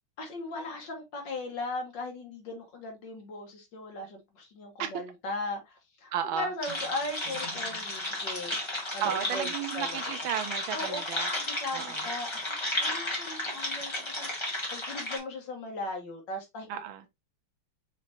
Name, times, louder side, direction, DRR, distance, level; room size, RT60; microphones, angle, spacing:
voice 1, 0.2-8.5 8.9-9.9 10.7-11.0 11.3-12.5 12.7-16.7, left 2 dB, 65° left, 2.0 m, -38 dB
voice 2, 6.1-6.5 9.0-11.3 11.7-12.1 16.7-17.1, right 9 dB, 80° right, 1.5 m, -33 dB
sound 1, 6.6-15.2, left 1 dB, 15° left, 1.3 m, -33 dB
5.9 x 3.1 x 2.8 m
omnidirectional pair, 2.2 m